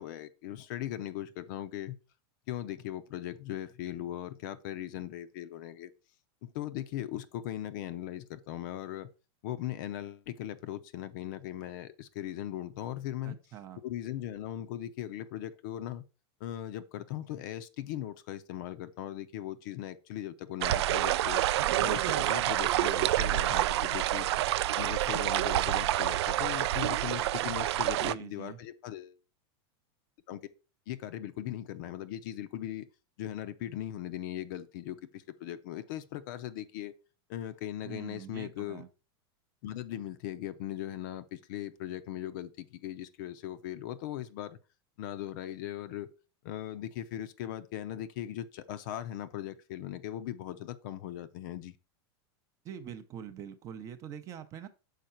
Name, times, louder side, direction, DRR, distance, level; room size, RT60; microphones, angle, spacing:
voice 1, 0.0-2.0 2.5-5.9 6.4-9.1 9.4-13.4 13.8-16.0 16.4-21.4 21.8-24.3 24.8-29.2 30.3-30.4 30.9-32.9 33.2-36.9 37.3-38.8 39.6-44.6 45.0-46.1 46.4-51.7, left 12 dB, 50° left, 0.6 m, -39 dB
voice 2, 13.2-13.8 28.0-28.6 37.8-38.9 52.6-54.7, right 9 dB, 25° right, 0.6 m, -44 dB
sound 1, 20.6-28.1, right 14 dB, 80° right, 0.4 m, -28 dB
6.5 x 4.7 x 4.4 m
supercardioid pair, 165°, 14 cm